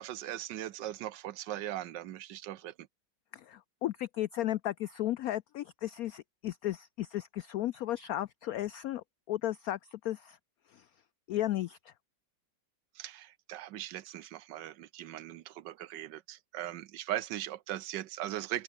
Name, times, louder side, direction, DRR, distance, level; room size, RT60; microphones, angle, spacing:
voice 1, 0.0-2.9 12.9-18.6, right 13 dB, 70° right, 1.4 m, -39 dB
voice 2, 3.3-10.4 10.7-10.8 11.3-11.9, left 13 dB, 80° left, 0.8 m, -35 dB
open air
omnidirectional pair, 2.1 m